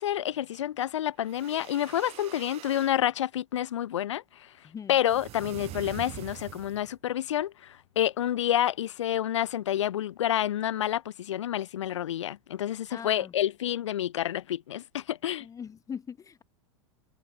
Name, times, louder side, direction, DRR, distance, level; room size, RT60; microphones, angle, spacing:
voice 1, 0.0-4.5 4.9-15.5, left 11 dB, 85° left, 0.6 m, -29 dB
sound 1, 1.2-3.0 5.1-7.0, right 16 dB, 45° right, 1.8 m, -44 dB
voice 2, 4.6-5.0 12.9-13.3 15.4-16.4, left 7 dB, 20° left, 0.9 m, -41 dB
hypercardioid pair, 100°, 15 cm